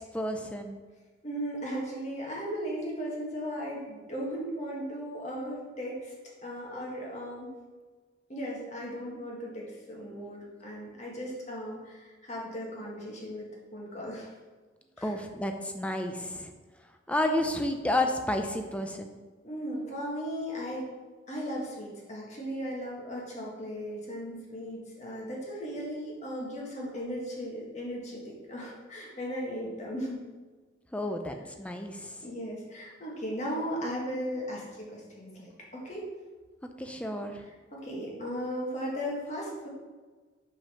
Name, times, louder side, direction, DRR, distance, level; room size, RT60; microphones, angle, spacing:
voice 1, 0.1-0.8 15.0-16.5 17.1-19.1 30.9-32.2 36.8-37.4, left 1 dB, 5° left, 5 dB, 0.5 m, -31 dB
voice 2, 1.2-6.1 6.4-7.5 8.3-14.4 15.0-15.2 19.4-20.9 21.3-30.2 32.2-36.1 37.5-39.7, equal, 40° left, -3 dB, 1.8 m, -37 dB
5.6 x 5.1 x 5.7 m, 1.4 s
head